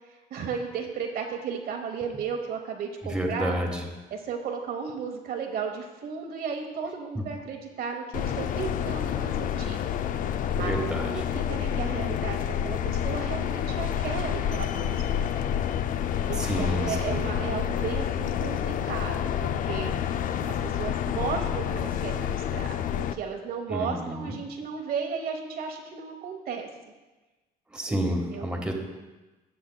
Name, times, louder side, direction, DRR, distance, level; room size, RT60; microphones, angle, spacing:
voice 1, 0.1-3.6 4.1-9.8 10.6-10.7 11.1-15.2 16.3-20.0 20.5-26.7 27.9-28.5, right 6 dB, 60° right, 3 dB, 1.0 m, -34 dB
voice 2, 3.0-3.8 10.6-11.1 16.3-17.3 23.7-24.3 27.7-28.7, equal, 5° right, 0 dB, 1.4 m, -30 dB
sound 1, 8.1-23.1, left 9 dB, 55° left, 0.4 m, -28 dB
14.0 x 6.8 x 2.2 m, 1.1 s
cardioid pair, 110°, 17 cm